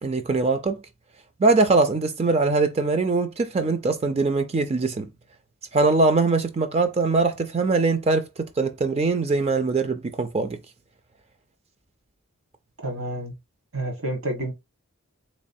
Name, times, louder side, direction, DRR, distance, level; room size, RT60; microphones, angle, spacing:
voice 1, 0.0-0.8 1.4-5.1 5.7-10.6, right 3 dB, 30° right, 0.4 m, -22 dB
voice 2, 12.8-13.3 13.7-14.5, right 1 dB, 75° right, 1.4 m, -29 dB
3.6 x 3.1 x 2.6 m
head